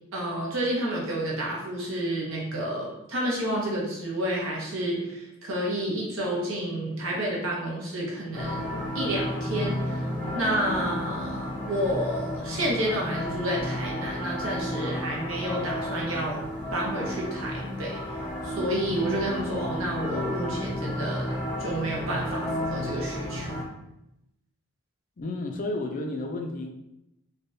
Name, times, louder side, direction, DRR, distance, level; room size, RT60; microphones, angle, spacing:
voice 1, 0.1-10.0 10.3-18.0 18.4-21.3 21.6-23.5, right 1 dB, 65° right, -3 dB, 0.8 m, -30 dB
sound 1, 8.3-23.6, left 1 dB, 10° left, 0.7 m, -32 dB
voice 2, 25.2-26.7, left 2 dB, 35° left, 3 dB, 0.3 m, -31 dB
3.3 x 2.2 x 2.6 m, 0.86 s
head